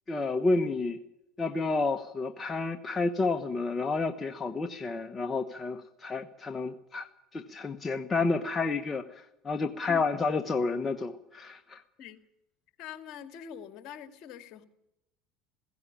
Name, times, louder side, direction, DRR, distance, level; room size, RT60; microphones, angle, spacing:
voice 1, 0.1-1.0 1.4-11.8, left 3 dB, 20° left, 6 dB, 1.2 m, -30 dB
voice 2, 12.8-14.7, left 8 dB, 55° left, 9 dB, 2.1 m, -44 dB
16.5 x 15.5 x 9.9 m, 0.88 s
supercardioid pair, 105°, 0 cm